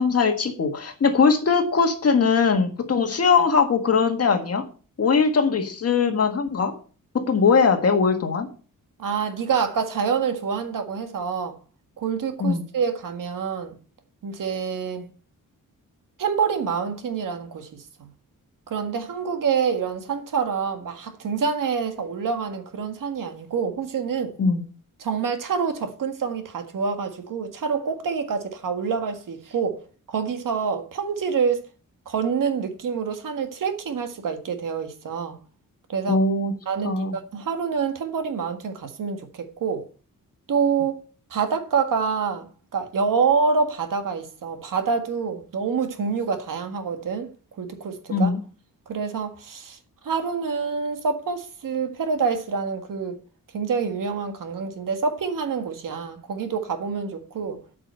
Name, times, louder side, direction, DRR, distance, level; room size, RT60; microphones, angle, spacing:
voice 1, 0.0-4.6 5.0-6.8 7.1-8.5 12.4-12.6 24.4-24.6 36.1-36.5 36.8-37.2 48.1-48.4, left 5 dB, 45° left, 1.7 m, -20 dB
voice 2, 9.0-11.6 12.0-13.7 14.2-15.1 16.2-17.7 18.0-18.1 18.7-24.3 25.0-29.8 30.1-31.7 32.1-35.4 35.9-36.2 36.7-39.9 40.5-41.0 41.3-48.3 48.9-49.8 50.0-53.2 53.5-57.6, right 6 dB, 70° right, 1.7 m, -26 dB
8.9 x 6.0 x 8.2 m
wide cardioid pair, 170°, 33 cm